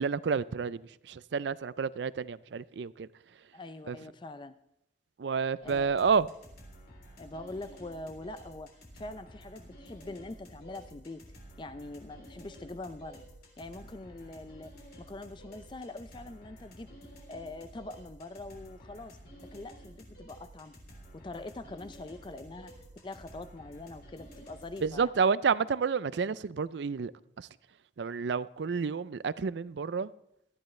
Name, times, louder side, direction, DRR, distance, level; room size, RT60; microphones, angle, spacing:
voice 1, 0.0-3.1 3.9-4.0 5.2-6.3 24.8-27.1 27.4-27.5 28.0-30.1, right 5 dB, 75° right, 0.4 m, -30 dB
voice 2, 3.5-4.6 5.6-5.9 7.2-11.2 11.6-13.2 13.6-16.9 17.3-19.2 19.5-20.7 21.2-22.7 23.0-25.1, left 2 dB, 25° left, 0.4 m, -43 dB
sound 1, 5.6-25.1, equal, 55° left, 3.4 m, -52 dB
18.0 x 13.0 x 3.2 m
head